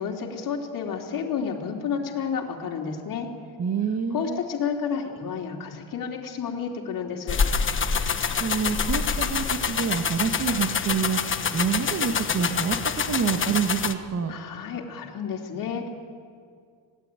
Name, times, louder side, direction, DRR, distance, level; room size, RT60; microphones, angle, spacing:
voice 1, 0.0-3.3 4.1-7.4 14.3-15.9, left 6 dB, 45° left, -1 dB, 3.2 m, -31 dB
voice 2, 3.6-4.4 8.4-12.8 13.1-14.3, right 6 dB, 35° right, 5 dB, 1.8 m, -27 dB
sound 1, 7.3-13.9, left 6 dB, 25° left, 1.3 m, -26 dB
27.5 x 18.0 x 9.1 m, 2.2 s
cardioid pair, 140°, 45 cm